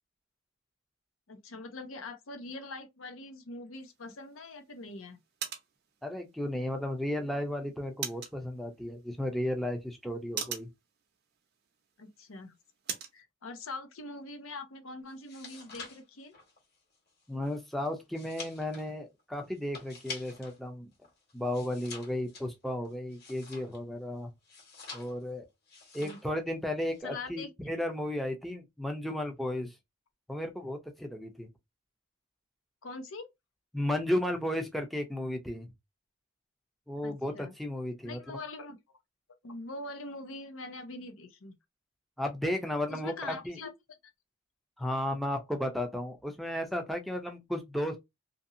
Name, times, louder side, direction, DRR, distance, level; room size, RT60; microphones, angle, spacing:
voice 1, 1.3-5.2 12.0-12.5 13.1-16.3 26.0-26.2 27.0-27.5 32.8-33.3 37.0-37.5 38.0-39.0 39.4-41.5 42.9-43.7, left 2 dB, 85° left, 0.7 m, -43 dB
sound 1, 3.8-13.2, right 8 dB, 50° right, 0.6 m, -45 dB
voice 2, 6.0-10.7 17.3-20.9 21.3-24.3 24.9-25.5 25.9-29.7 30.3-31.5 33.7-35.7 36.9-38.4 42.2-43.6 44.8-48.0, left 1 dB, ahead, 0.5 m, -34 dB
sound 2, 15.1-20.6 20.9-24.0 24.4-25.3 25.7-26.3 26.6-27.0, left 4 dB, 50° left, 1.4 m, -47 dB
2.8 x 2.7 x 2.6 m
head